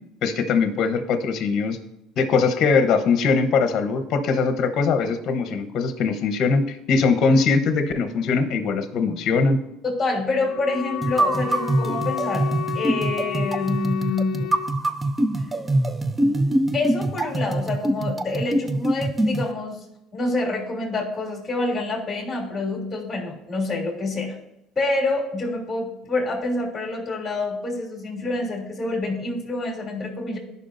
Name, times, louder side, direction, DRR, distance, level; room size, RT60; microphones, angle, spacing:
voice 1, 0.2-1.8 2.2-9.6, left 4 dB, 50° left, 7 dB, 0.9 m, -21 dB
voice 2, 9.8-12.5 12.7-14.6 16.7-19.8 20.1-24.3 24.8-30.4, left 2 dB, 20° left, -2 dB, 2.9 m, -27 dB
Wind instrument woodwind instrument, 10.4-14.8, left 12 dB, 75° left, 0.4 m, -32 dB
sound 1, 11.0-19.5, right 1 dB, 15° right, 0.4 m, -24 dB
14.5 x 5.5 x 2.6 m, 0.84 s
cardioid pair, 135°, 0 cm